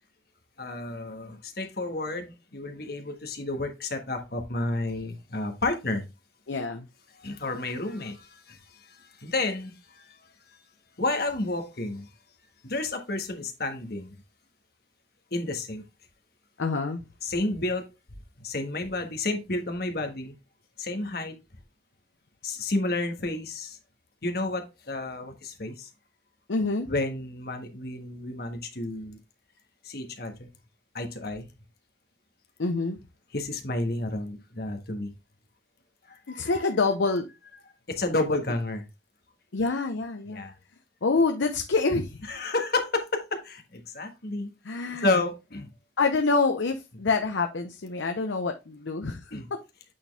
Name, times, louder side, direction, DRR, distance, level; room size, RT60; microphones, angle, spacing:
voice 1, 0.6-6.0 7.2-10.2 10.5-10.6 11.0-12.1 12.6-14.1 15.3-15.8 17.2-17.8 18.4-20.3 20.8-21.3 22.4-23.8 24.2-25.9 26.9-29.2 29.8-30.5 30.9-31.5 33.3-35.1 36.1-36.5 37.9-38.8 40.3-40.5 42.3-44.5 45.0-45.7 49.3-49.5, left 2 dB, 55° left, 1.5 m, -31 dB
voice 2, 6.5-6.9 16.6-17.0 26.5-26.9 32.6-33.0 36.3-37.3 39.5-40.4 41.0-42.2 44.6-45.2 46.0-49.6, left 3 dB, 85° left, 0.7 m, -26 dB
8.5 x 4.3 x 3.4 m
head